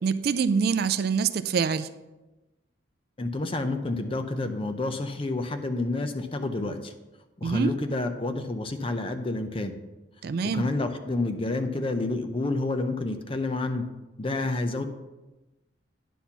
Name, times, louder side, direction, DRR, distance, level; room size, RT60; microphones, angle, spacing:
voice 1, 0.0-1.9 7.4-7.7 10.2-10.7, right 6 dB, 50° right, 12 dB, 0.3 m, -25 dB
voice 2, 3.2-6.9 7.4-9.7 10.5-13.9 14.2-14.8, left 2 dB, 30° left, 8 dB, 0.6 m, -29 dB
10.0 x 4.2 x 5.8 m, 1.1 s
head